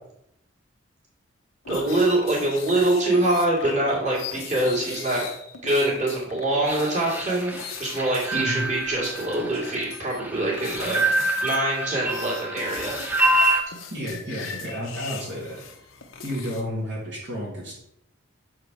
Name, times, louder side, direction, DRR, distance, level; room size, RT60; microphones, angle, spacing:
sound 1, 1.6-8.7 9.0-10.2 10.5-11.6 12.0-16.6, left 6 dB, 85° left, 0.9 m, -39 dB
voice 1, 1.7-5.3 5.6-13.0, right 1 dB, 35° right, -5 dB, 2.4 m, -24 dB
sound 2, 6.7-13.6, right 1 dB, 10° right, 0.6 m, -26 dB
voice 2, 8.3-8.6 13.9-15.6 16.2-17.7, equal, 60° right, -6 dB, 1.9 m, -31 dB
6.9 x 4.8 x 4.7 m, 0.79 s
head